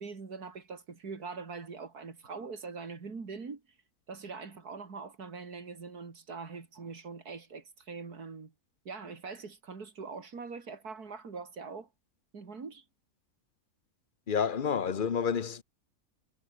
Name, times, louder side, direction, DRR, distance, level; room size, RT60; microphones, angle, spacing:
voice 1, 0.0-3.6 4.1-8.5 8.8-11.9 12.3-12.8, right 4 dB, 70° right, 3.3 m, -43 dB
voice 2, 14.3-15.6, left 7 dB, 40° left, 0.9 m, -29 dB
omnidirectional pair, 1.7 m